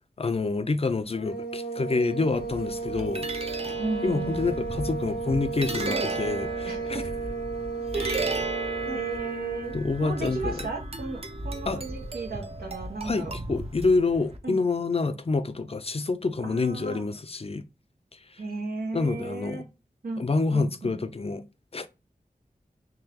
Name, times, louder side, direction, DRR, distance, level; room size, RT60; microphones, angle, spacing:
voice 1, 0.2-3.3 4.0-7.0 9.7-10.6 11.7-11.8 13.1-17.6 18.9-19.6 20.2-21.4 21.7-21.9, left 3 dB, 40° left, 0.5 m, -27 dB
sound 1, 1.1-9.9, right 4 dB, 90° left, 1.2 m, -34 dB
sound 2, 2.3-14.4, right 2 dB, 40° right, 0.7 m, -35 dB
voice 2, 3.8-4.5 5.8-6.1 6.6-7.1 7.9-8.4 8.9-13.4 14.4-14.6 16.4-17.0 18.4-19.7 20.0-21.0, right 3 dB, 90° right, 1.2 m, -35 dB
3.8 x 3.0 x 2.8 m
wide cardioid pair, 45°, 15 cm